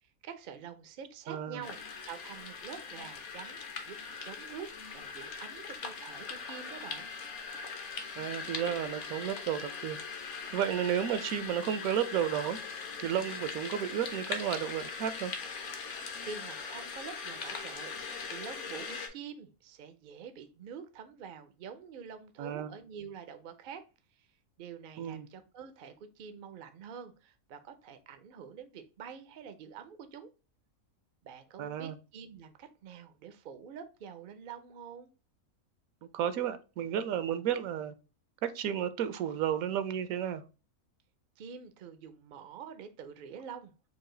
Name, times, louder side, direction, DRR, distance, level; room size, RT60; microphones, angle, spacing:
voice 1, 0.0-1.8 2.1-4.0 4.2-4.7 4.9-7.1 16.2-23.8 24.6-30.3 31.2-35.1 41.4-43.7, right 7 dB, 60° right, 0.5 m, -46 dB
voice 2, 1.3-1.6 8.2-10.0 10.5-12.6 13.0-15.3 22.4-22.7 25.0-25.3 31.6-32.0 36.1-37.9 38.4-40.4, right 9 dB, 80° right, 1.0 m, -32 dB
sound 1, 1.6-19.1, left 5 dB, 60° left, 1.1 m, -41 dB
4.8 x 2.4 x 3.8 m
omnidirectional pair, 1.5 m